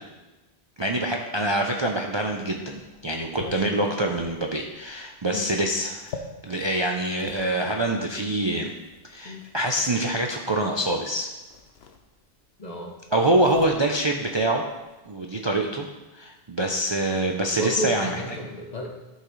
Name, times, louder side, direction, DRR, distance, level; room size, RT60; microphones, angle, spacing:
voice 1, 0.8-8.7 9.1-11.3 13.1-14.6 15.1-15.9 16.1-18.2, right 1 dB, 35° right, 1 dB, 0.5 m, -25 dB
sound 1, 2.7-7.5 8.4-9.7 10.9-11.1 11.4-12.5 12.8-15.0, left 5 dB, 85° left, 1.0 m, -44 dB
voice 2, 12.6-13.0 15.3-15.5 17.5-18.9, right 1 dB, 45° left, 1 dB, 1.2 m, -32 dB
12.0 x 5.5 x 3.1 m, 1.1 s
omnidirectional pair, 1.0 m